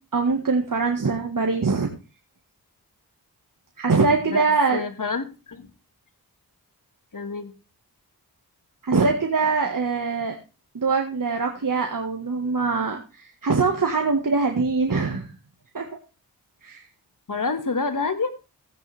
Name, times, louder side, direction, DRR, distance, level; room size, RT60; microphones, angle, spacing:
voice 1, 0.1-1.9 3.8-4.8 8.8-10.4 10.7-15.3 15.7-15.9 16.6-16.8, right 4 dB, 55° right, 2 dB, 1.7 m, -23 dB
voice 2, 4.7-5.7 7.1-7.5 17.3-18.4, left 4 dB, 55° left, 8 dB, 1.9 m, -28 dB
15.0 x 9.1 x 3.4 m, 0.30 s
cardioid pair, 45°, 39 cm